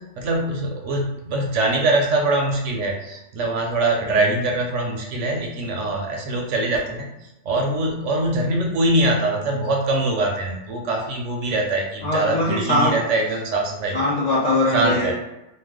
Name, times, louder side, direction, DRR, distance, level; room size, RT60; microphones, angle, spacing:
voice 1, 0.0-7.1 7.5-14.0 14.7-15.1, right 2 dB, 65° right, 1 dB, 0.8 m, -23 dB
voice 2, 12.0-13.0 13.9-15.1, left 1 dB, 70° left, -5 dB, 0.4 m, -21 dB
2.5 x 2.1 x 3.5 m, 0.93 s
omnidirectional pair, 1.5 m